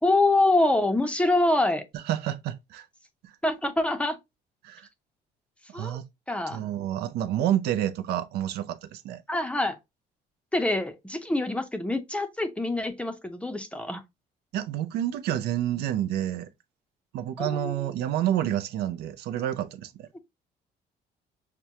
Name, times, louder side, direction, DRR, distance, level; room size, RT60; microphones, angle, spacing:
voice 1, 0.0-1.8 3.4-4.2 5.7-6.0 6.3-6.6 9.3-9.8 10.5-14.0 17.4-17.9, left 2 dB, 5° left, 0.6 m, -25 dB
voice 2, 1.9-2.9 3.2-3.3 4.6-4.9 5.7-6.1 6.5-9.2 14.5-16.5 17.1-20.1, right 11 dB, 75° right, 0.5 m, -29 dB
5.9 x 2.2 x 2.7 m
cardioid pair, 110°, 17 cm